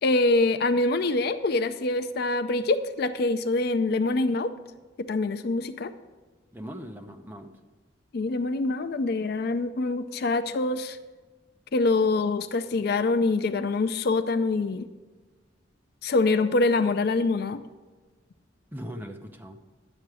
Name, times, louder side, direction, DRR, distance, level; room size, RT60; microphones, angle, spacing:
voice 1, 0.0-4.5 5.0-5.9 8.1-11.0 11.7-14.9 16.0-17.6, left 3 dB, 50° left, 11 dB, 0.4 m, -25 dB
voice 2, 6.5-7.5 18.7-19.7, equal, 10° right, 4 dB, 0.7 m, -39 dB
10.5 x 7.8 x 4.8 m, 1.3 s
head